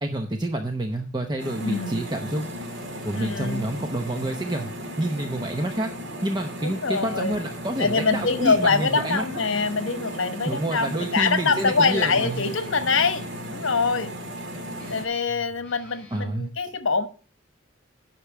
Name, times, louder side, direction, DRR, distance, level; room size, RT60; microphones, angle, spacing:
voice 1, 0.0-2.5 3.0-4.7 5.0-5.9 6.2-9.2 10.5-12.5 16.1-16.5, right 1 dB, 20° right, 5 dB, 0.8 m, -28 dB
sound 1, 1.4-15.1, equal, 65° right, 1.9 m, -36 dB
voice 2, 1.6-2.0 3.1-3.6 6.6-7.4 7.8-14.1 14.9-17.1, left 4 dB, 80° left, 10 dB, 1.2 m, -24 dB
Guitar, 11.4-16.3, equal, 5° left, 3.2 m, -49 dB
10.0 x 6.1 x 6.0 m, 0.39 s
head